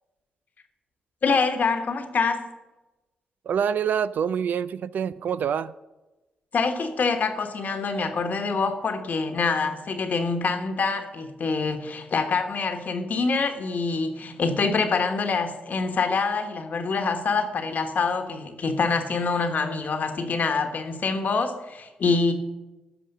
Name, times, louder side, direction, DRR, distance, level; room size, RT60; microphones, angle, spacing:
voice 1, 1.2-2.5 6.5-22.3, left 4 dB, 60° left, 1.2 m, -25 dB
voice 2, 3.5-5.7, right 7 dB, 65° right, 0.3 m, -26 dB
13.0 x 4.9 x 6.5 m
hypercardioid pair, 45°, 3 cm